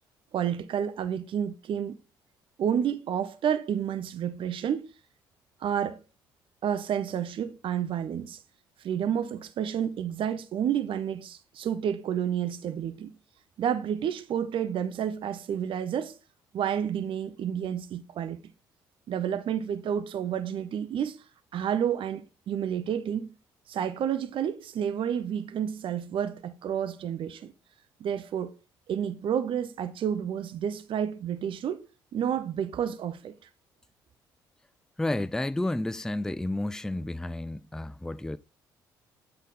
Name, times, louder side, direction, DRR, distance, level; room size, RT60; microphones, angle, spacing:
voice 1, 0.3-1.9 2.6-4.9 5.6-6.0 6.6-8.4 8.8-13.1 13.6-16.2 16.5-18.4 19.1-21.2 21.5-23.3 23.7-27.5 28.0-28.5 28.9-31.8 32.1-33.3, right 9 dB, 55° right, 0.6 m, -30 dB
voice 2, 35.0-38.4, left 1 dB, 5° left, 0.3 m, -31 dB
8.1 x 3.9 x 3.8 m
hypercardioid pair, 50°, 10 cm